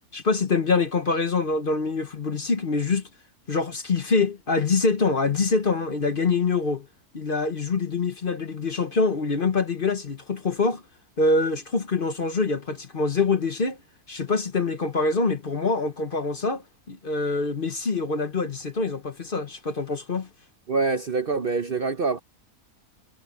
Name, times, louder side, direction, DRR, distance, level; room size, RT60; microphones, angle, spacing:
voice 1, 0.1-3.0 3.5-6.9 7.1-10.8 11.2-13.8 14.1-20.3, left 4 dB, 40° left, 1.1 m, -25 dB
voice 2, 20.7-22.2, right 4 dB, 45° right, 0.8 m, -25 dB
omnidirectional pair, 1.6 m